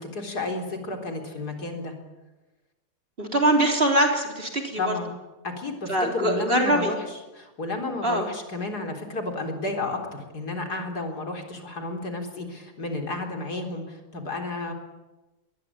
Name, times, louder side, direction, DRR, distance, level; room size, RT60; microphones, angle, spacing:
voice 1, 0.0-1.9 4.8-5.1 5.4-7.0 7.3-14.7, left 2 dB, 70° left, 4 dB, 4.4 m, -32 dB
voice 2, 3.2-4.9 5.9-6.9 8.0-8.3, right 1 dB, 35° right, 2 dB, 4.0 m, -23 dB
22.5 x 21.0 x 8.6 m, 1.1 s
omnidirectional pair, 1.8 m